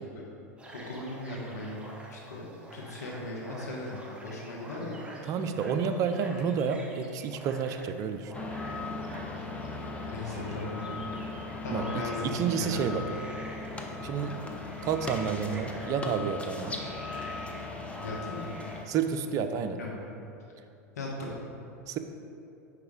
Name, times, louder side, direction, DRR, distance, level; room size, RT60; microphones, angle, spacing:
sound 1, 0.6-19.3, right 1 dB, 10° right, 0.9 m, -48 dB
voice 1, 0.7-1.8 2.1-2.5 2.7-5.0 10.1-10.8 11.6-12.3 12.6-12.9 18.0-18.5 19.8-20.1 21.0-21.3, left 2 dB, 75° left, -2 dB, 1.1 m, -37 dB
voice 2, 5.3-8.3 11.7-13.0 14.0-14.5 14.8-16.8 18.9-19.8 21.9-22.0, right 6 dB, 40° right, 8 dB, 0.5 m, -30 dB
sound 2, 8.3-18.8, left 3 dB, 15° left, 0.6 m, -38 dB
5.1 x 4.8 x 4.9 m, 2.7 s
hypercardioid pair, 90°, 9 cm